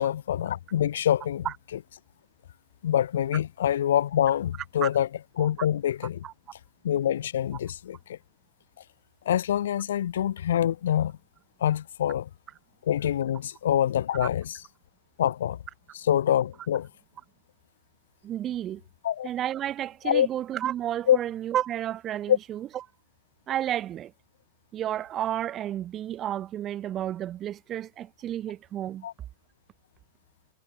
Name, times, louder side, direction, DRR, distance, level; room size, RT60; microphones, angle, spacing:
voice 1, 0.0-1.5 2.8-5.1 5.4-6.2 6.8-8.2 9.2-11.2 11.6-12.3 12.8-14.6 15.2-15.6 15.9-16.9 19.0-19.3 20.0-20.3 21.1-21.2 22.3-22.4 29.0-29.1, left 10 dB, 60° left, 1.0 m, -25 dB
voice 2, 18.2-18.8 19.2-22.7 23.5-24.1 24.7-29.1, right 11 dB, 30° right, 1.2 m, -31 dB
figure-of-eight pair, 90°, 0 cm